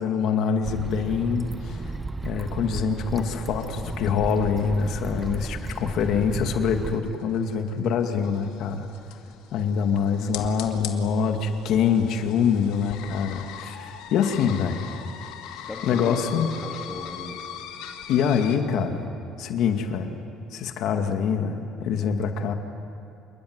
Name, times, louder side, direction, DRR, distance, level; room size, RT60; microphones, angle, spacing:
voice 1, 0.0-8.9 9.5-14.8 15.8-16.5 18.1-19.1 19.4-20.2 20.5-22.5, left 6 dB, 55° left, 5 dB, 2.3 m, -25 dB
sound 1, 0.6-7.0, right 3 dB, 10° right, 0.7 m, -34 dB
sound 2, 3.6-18.6, left 9 dB, 90° left, 2.3 m, -41 dB
voice 2, 15.5-17.4, left 2 dB, 10° left, -1 dB, 2.4 m, -38 dB
27.5 x 22.0 x 9.7 m, 2.7 s
cardioid pair, 160°, 0 cm